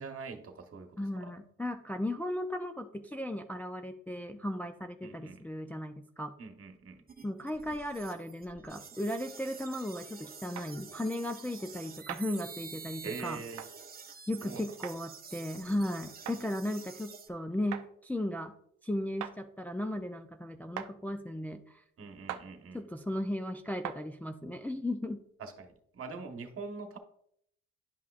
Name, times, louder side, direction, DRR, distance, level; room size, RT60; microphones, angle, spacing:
voice 1, 0.0-1.3 5.0-5.4 6.4-7.0 13.0-13.6 14.4-14.7 22.0-22.8 25.4-27.0, right 4 dB, 50° right, 5 dB, 1.2 m, -43 dB
voice 2, 1.0-6.3 7.2-13.4 14.3-18.5 18.8-21.8 22.7-25.2, left 1 dB, 5° left, 4 dB, 0.4 m, -36 dB
sound 1, 7.1-17.3, right 5 dB, 30° right, 0.9 m, -49 dB
sound 2, 10.6-10.7 12.1-12.3 13.6-13.7 14.8-15.0 16.2-16.4 17.7-17.9 19.2-19.4 20.8-20.9 22.3-22.5 23.8-24.0, right 11 dB, 75° right, 0.6 m, -39 dB
10.5 x 5.7 x 2.4 m, 0.71 s
cardioid pair, 90°, 30 cm